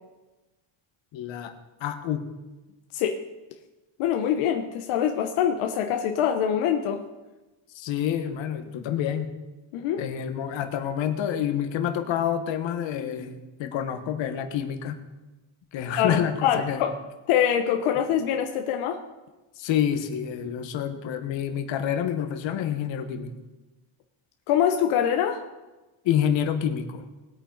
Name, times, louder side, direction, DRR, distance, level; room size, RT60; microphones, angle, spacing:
voice 1, 1.1-1.5 1.8-2.2 7.7-9.3 10.0-15.0 15.7-16.8 19.6-23.3 26.0-27.0, left 9 dB, 65° left, 7 dB, 1.5 m, -28 dB
voice 2, 4.0-7.0 9.7-10.1 16.0-16.9 17.3-19.0 24.5-25.4, left 9 dB, 90° left, 5 dB, 1.1 m, -24 dB
20.0 x 8.7 x 4.0 m, 1.1 s
cardioid pair, 140°, 49 cm